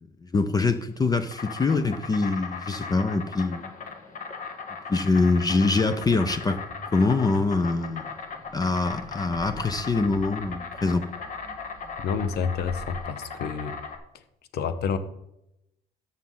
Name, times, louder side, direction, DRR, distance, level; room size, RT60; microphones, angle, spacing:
voice 1, 0.2-3.7 4.9-6.6 6.9-8.1 8.5-11.1, left 3 dB, 20° left, 10 dB, 0.6 m, -24 dB
Insect, 0.9-14.0, left 5 dB, 50° left, 1.4 m, -38 dB
sound 1, 6.0-13.0, right 3 dB, 15° right, 1.4 m, -45 dB
voice 2, 12.0-13.8 14.1-14.2 14.5-15.0, left 6 dB, 70° left, 11 dB, 0.9 m, -29 dB
13.5 x 5.8 x 3.9 m, 0.84 s
cardioid pair, 110°, 17 cm